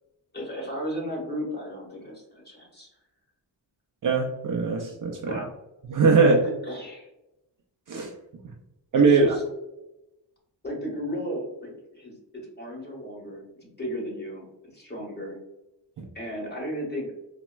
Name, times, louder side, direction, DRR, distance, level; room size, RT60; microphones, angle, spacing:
voice 1, 0.3-2.9 5.2-5.5 6.2-7.1 9.0-9.4 10.6-14.5 14.7-15.4 16.1-17.1, equal, 20° left, -3 dB, 1.3 m, -34 dB
voice 2, 4.0-5.4 5.9-6.4 7.9-8.1 8.9-9.4 16.0-16.1, right 4 dB, 45° right, 1 dB, 0.4 m, -21 dB
4.1 x 2.1 x 2.2 m, 0.94 s
cardioid pair, 90°, 46 cm